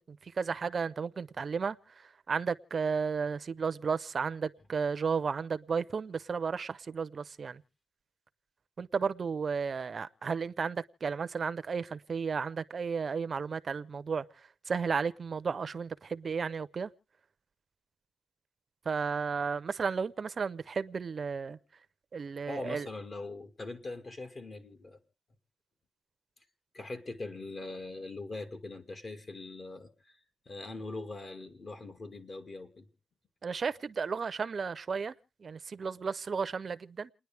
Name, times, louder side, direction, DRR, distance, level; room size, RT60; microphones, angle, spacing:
voice 1, 0.0-7.6 8.8-14.2 14.7-16.9 18.9-21.6 22.1-22.9 33.4-35.1 35.4-37.1, right 5 dB, 40° right, 0.7 m, -33 dB
voice 2, 22.5-25.0 26.7-30.2 30.5-32.9, left 2 dB, 40° left, 2.1 m, -42 dB
29.5 x 10.0 x 3.4 m
cardioid pair, 120°, 0 cm